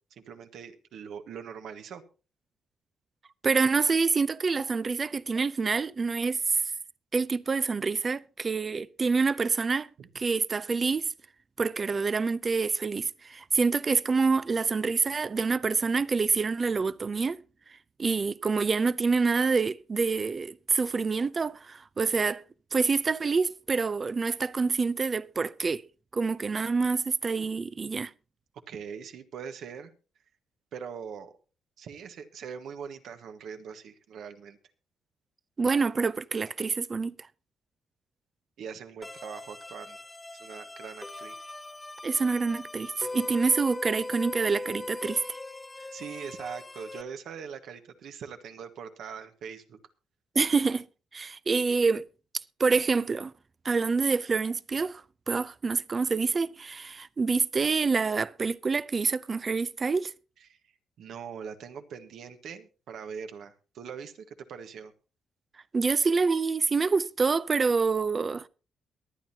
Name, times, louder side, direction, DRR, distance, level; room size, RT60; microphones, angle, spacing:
voice 1, 0.3-2.0 10.0-10.1 28.7-29.9 30.7-31.3 31.8-34.6 38.6-40.0 40.4-41.3 45.9-49.8 60.4-60.6 61.0-64.9, right 7 dB, 70° right, 1.4 m, -42 dB
voice 2, 3.4-6.6 7.1-9.9 10.1-11.1 11.6-17.4 18.0-22.4 22.7-25.8 26.1-28.1 35.6-37.1 42.0-45.2 50.4-50.8 51.1-52.0 52.6-53.3 53.6-60.1 65.7-68.5, right 4 dB, 35° right, 0.5 m, -27 dB
sound 1, 39.0-47.0, left 2 dB, 15° left, 1.1 m, -40 dB
23.0 x 9.1 x 2.8 m
cardioid pair, 90°, 0 cm